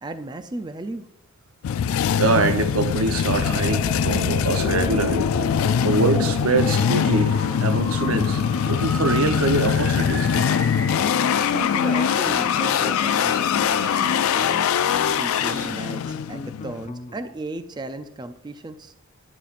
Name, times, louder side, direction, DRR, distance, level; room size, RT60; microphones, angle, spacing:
voice 1, 0.0-1.1 11.5-14.6 15.1-18.9, right 2 dB, 20° right, 0.4 m, -35 dB
sound 1, 1.6-16.9, left 8 dB, 70° left, 0.3 m, -22 dB
voice 2, 2.2-5.3 5.8-7.4 7.6-10.3, right 3 dB, 80° right, 0.8 m, -24 dB
sound 2, 3.4-15.7, equal, 5° left, 2.8 m, -35 dB
sound 3, 9.5-9.7 10.1-10.5 10.9-11.4 11.7-11.9 12.2-12.7 13.1-17.4, left 2 dB, 35° left, 0.6 m, -40 dB
11.0 x 9.2 x 2.5 m
head